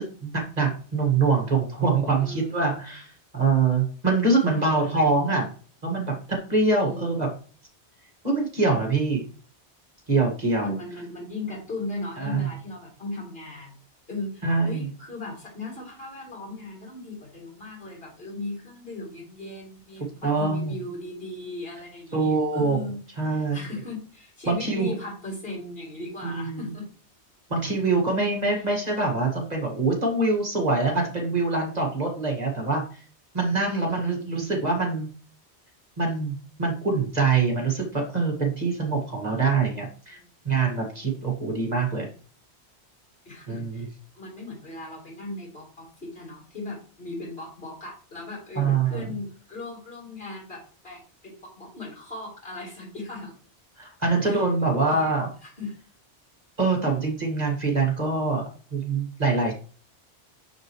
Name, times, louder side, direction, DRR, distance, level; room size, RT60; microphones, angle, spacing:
voice 1, 0.0-5.5 5.8-6.1 6.5-7.3 8.2-9.2 10.1-10.7 12.2-12.5 14.4-14.9 20.2-20.7 22.1-22.8 23.2-23.6 24.5-25.0 26.2-26.7 27.5-32.8 33.3-35.1 36.0-40.2 40.4-42.1 43.5-43.8 48.6-49.1 53.8-55.3 56.6-58.4 58.7-59.5, right 3 dB, 40° right, 1 dB, 2.0 m, -24 dB
voice 2, 2.2-2.7 4.5-5.0 6.8-7.1 10.6-13.8 14.1-26.9 28.5-28.6 33.6-34.4 40.1-40.2 43.2-53.3 54.2-54.5 54.9-55.1 55.4-55.8, left 2 dB, 60° left, -3 dB, 4.2 m, -38 dB
6.8 x 6.5 x 3.1 m, 0.40 s
omnidirectional pair, 1.1 m